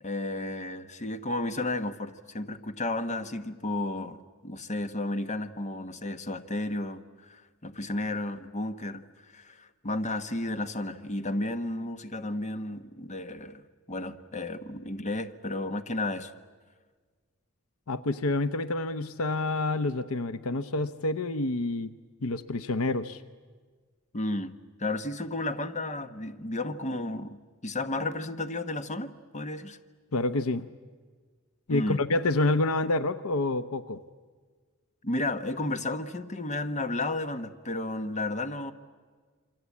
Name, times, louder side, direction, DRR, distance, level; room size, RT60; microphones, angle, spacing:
voice 1, 0.0-9.0 9.3-16.3 24.1-29.8 31.7-32.0 35.0-38.7, left 2 dB, 35° left, 10 dB, 1.1 m, -33 dB
voice 2, 17.9-21.9 22.2-23.2 30.1-30.6 31.7-34.0, left 2 dB, 75° left, 13 dB, 0.8 m, -28 dB
28.0 x 24.5 x 8.5 m, 1.5 s
head